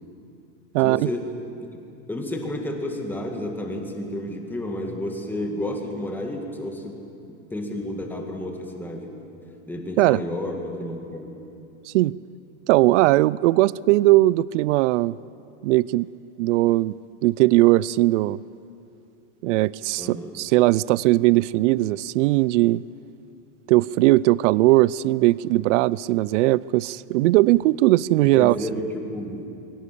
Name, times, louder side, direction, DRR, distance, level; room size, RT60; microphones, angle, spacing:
voice 1, 0.8-1.3 2.1-7.0 7.5-9.1 9.7-11.4 20.0-20.3 27.2-27.3 28.3-29.5, left 1 dB, 5° left, 2 dB, 2.1 m, -31 dB
voice 2, 12.7-15.2 15.6-16.1 16.4-17.0 17.2-18.4 19.4-22.8 23.7-28.6, right 18 dB, 70° right, 21 dB, 0.5 m, -19 dB
22.0 x 18.0 x 8.4 m, 2.7 s
supercardioid pair, 150°, 38 cm